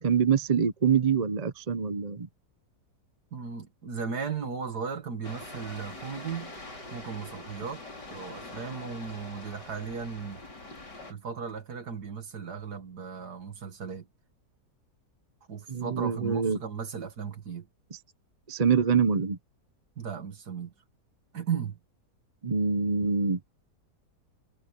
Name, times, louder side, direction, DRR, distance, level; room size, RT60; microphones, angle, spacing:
voice 1, 0.0-2.3 15.7-16.6 18.5-19.4 22.4-23.4, right 6 dB, 30° right, 0.8 m, -25 dB
voice 2, 3.3-6.5 6.9-7.8 8.1-10.4 11.1-14.1 15.5-17.7 20.0-20.7 21.3-21.8, right 6 dB, 70° right, 2.5 m, -36 dB
sound 1, 5.2-11.1, left 2 dB, 80° left, 6.7 m, -44 dB
omnidirectional pair, 1.8 m